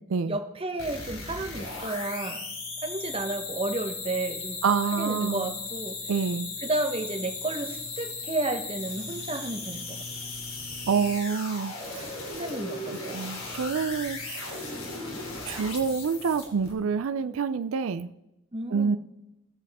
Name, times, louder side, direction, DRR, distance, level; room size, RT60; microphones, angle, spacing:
voice 1, 0.0-2.4 2.8-4.6 4.9-6.0 6.6-10.3 12.2-13.2 18.5-19.0, right 2 dB, 25° right, 6 dB, 1.0 m, -32 dB
sound 1, 0.8-16.7, left 3 dB, 85° left, 2.9 m, -37 dB
voice 2, 4.6-5.5 6.1-6.5 10.9-12.1 13.1-14.7 15.4-18.1 18.7-19.0, right 5 dB, 85° right, 13 dB, 0.4 m, -27 dB
20.0 x 7.0 x 3.5 m, 0.92 s
head